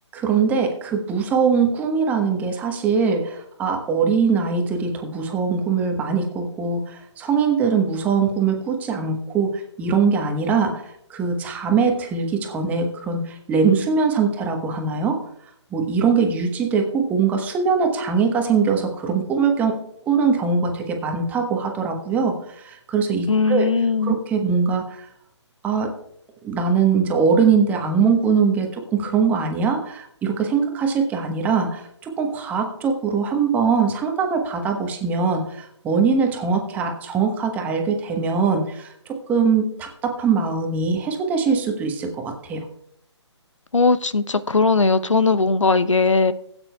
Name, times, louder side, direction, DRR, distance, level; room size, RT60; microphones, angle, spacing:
voice 1, 0.1-15.3 15.7-19.8 20.1-23.7 24.0-25.1 25.6-25.9 26.4-42.6, right 5 dB, 10° right, 3 dB, 1.1 m, -22 dB
voice 2, 23.3-24.2 43.7-46.3, left 4 dB, 90° left, 13 dB, 0.7 m, -19 dB
17.0 x 8.8 x 2.3 m, 0.70 s
figure-of-eight pair, 145°, 15 cm